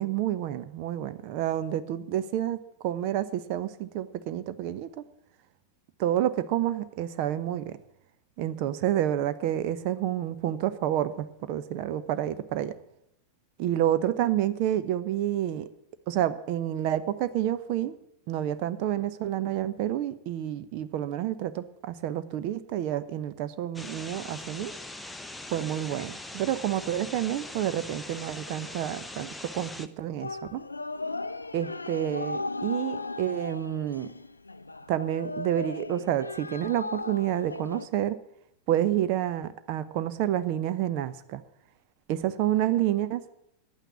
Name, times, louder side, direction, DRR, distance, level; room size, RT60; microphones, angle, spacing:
voice 1, 0.0-5.0 6.0-7.8 8.4-12.7 13.6-15.7 16.1-18.0 18.3-24.7 25.5-30.6 31.5-34.1 34.9-38.2 38.7-41.4 42.1-43.2, right 11 dB, 45° right, 13 dB, 0.8 m, -29 dB
sound 1, 23.7-29.9, left 1 dB, 5° left, 0.7 m, -41 dB
sound 2, 30.2-37.9, left 3 dB, 80° left, 0.4 m, -36 dB
11.0 x 9.2 x 8.1 m, 0.77 s
figure-of-eight pair, 90°, 0 cm